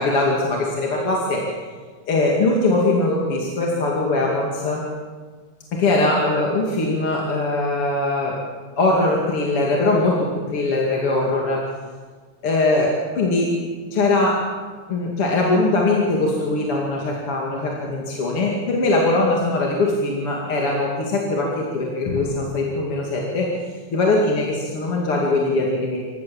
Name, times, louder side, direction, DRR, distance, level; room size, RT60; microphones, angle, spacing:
voice 1, 0.0-1.4 2.1-4.8 5.7-8.3 8.8-11.6 12.4-13.5 13.9-14.4 14.9-23.5 23.9-26.0, left 2 dB, 50° left, -2 dB, 3.3 m, -21 dB
26.0 x 16.0 x 7.2 m, 1.5 s
omnidirectional pair, 3.3 m